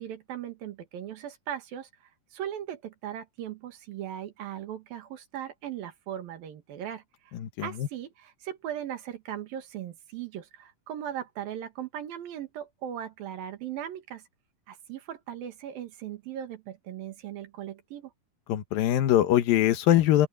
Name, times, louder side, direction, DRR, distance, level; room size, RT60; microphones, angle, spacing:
voice 1, 0.0-1.9 2.3-7.3 7.6-14.2 14.7-18.1, right 10 dB, 85° right, 3.6 m, -38 dB
voice 2, 7.3-7.9 18.5-20.3, left 12 dB, 85° left, 3.0 m, -23 dB
open air
omnidirectional pair, 4.0 m